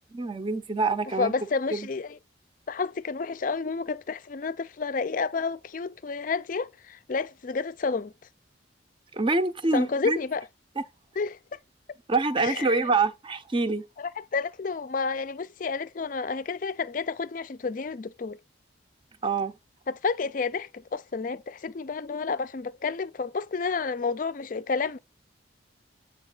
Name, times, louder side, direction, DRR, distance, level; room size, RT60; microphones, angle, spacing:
voice 1, 0.1-1.3 1.7-1.9 9.1-10.2 12.1-13.8 19.2-19.5, right 3 dB, 25° right, 0.5 m, -26 dB
voice 2, 1.2-2.2 2.7-8.1 9.7-10.5 11.2-11.6 12.4-12.9 14.0-18.4 19.9-25.0, left 4 dB, 45° left, 0.4 m, -30 dB
8.1 x 3.9 x 3.8 m
head